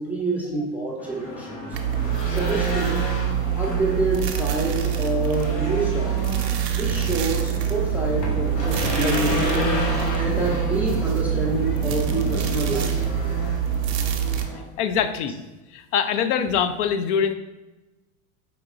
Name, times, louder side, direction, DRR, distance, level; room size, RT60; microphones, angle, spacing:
voice 1, 0.0-1.8 2.3-3.1 3.6-6.3 6.8-9.7 10.1-13.3, right 2 dB, 5° right, -2 dB, 0.4 m, -27 dB
Race car auto racing / Engine, 1.0-14.6, left 2 dB, 85° left, 1.3 m, -31 dB
sound 1, 1.7-14.5, right 10 dB, 90° right, 0.6 m, -25 dB
sound 2, 6.8-12.8, left 2 dB, 30° left, 0.7 m, -35 dB
voice 2, 14.8-15.4 15.7-17.3, left 7 dB, 70° left, 9 dB, 0.5 m, -23 dB
5.1 x 2.9 x 2.4 m, 1.1 s
hypercardioid pair, 100°, 48 cm